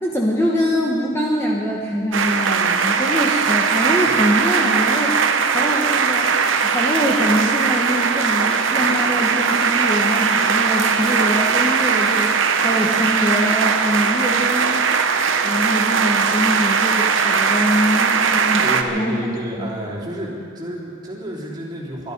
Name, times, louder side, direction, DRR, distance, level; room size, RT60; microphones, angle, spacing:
voice 1, 0.0-12.3 12.6-14.8 15.4-18.6 18.9-19.2 19.6-19.8, equal, 10° left, -3 dB, 1.1 m, -23 dB
sound 1, 2.1-18.8, right 5 dB, 60° right, 0.9 m, -19 dB
voice 2, 18.6-22.1, equal, 20° right, -5 dB, 3.2 m, -30 dB
22.5 x 12.0 x 5.3 m, 2.4 s
head